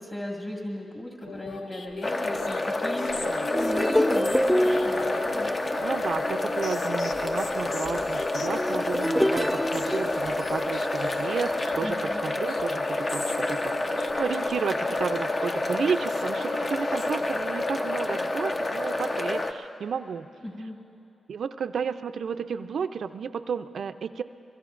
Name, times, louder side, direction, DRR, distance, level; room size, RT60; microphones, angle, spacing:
voice 1, 0.0-5.7 11.8-12.2 20.4-20.8, left 1 dB, 20° left, -3 dB, 2.0 m, -37 dB
sound 1, 1.2-17.6, left 3 dB, 70° left, 0.9 m, -40 dB
sound 2, 2.0-19.5, left 2 dB, 40° left, 0.9 m, -28 dB
sound 3, 3.5-10.8 11.4-11.6, equal, 5° left, 0.4 m, -27 dB
voice 2, 5.8-20.3 21.3-24.2, right 6 dB, 75° right, 10 dB, 0.4 m, -32 dB
23.5 x 23.0 x 2.5 m, 3.0 s
cardioid pair, 80°, 0 cm